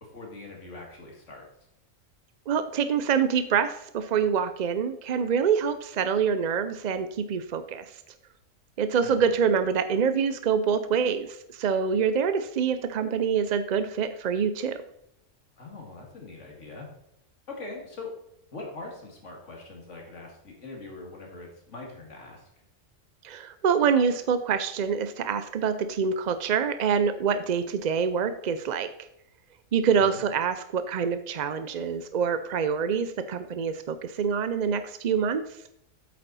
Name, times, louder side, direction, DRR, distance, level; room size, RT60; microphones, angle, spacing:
voice 1, 0.0-1.5 9.0-9.3 15.6-16.9 17.5-18.1 18.5-22.4 30.0-30.2, left 3 dB, 65° left, 0 dB, 2.5 m, -42 dB
voice 2, 2.5-7.8 8.8-14.8 23.2-28.9 29.7-35.4, right 6 dB, 55° right, 10 dB, 0.4 m, -26 dB
8.5 x 7.7 x 4.1 m, 0.77 s
omnidirectional pair, 1.3 m